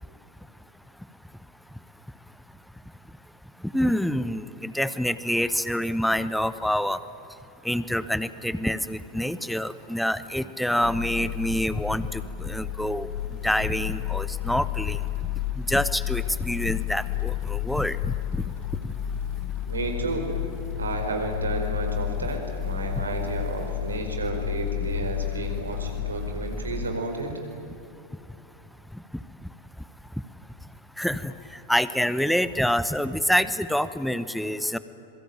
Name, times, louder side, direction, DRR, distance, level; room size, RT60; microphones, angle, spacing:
voice 1, 3.7-7.0 7.6-13.1 13.4-15.0 15.5-18.1 18.8-18.9 31.0-31.3 31.7-34.8, equal, ahead, 15 dB, 0.9 m, -26 dB
sound 1, 10.8-26.9, left 12 dB, 50° left, 2.0 m, -31 dB
voice 2, 19.7-20.3 20.8-27.3, right 3 dB, 75° right, 4 dB, 4.8 m, -31 dB
26.5 x 23.0 x 9.1 m, 2.8 s
figure-of-eight pair, 90°, 0 cm